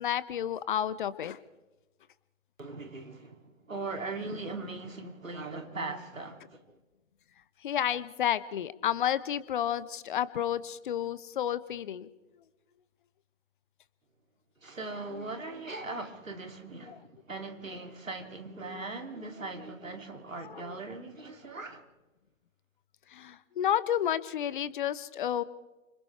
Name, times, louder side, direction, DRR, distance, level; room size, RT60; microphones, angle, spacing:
voice 1, 0.0-1.4 7.6-12.1 20.3-20.7 23.1-25.4, left 10 dB, 40° left, 0.9 m, -31 dB
voice 2, 2.6-6.8 14.6-21.8, right 3 dB, 75° right, 2.9 m, -40 dB
29.5 x 26.5 x 3.4 m
figure-of-eight pair, 125°, 40 cm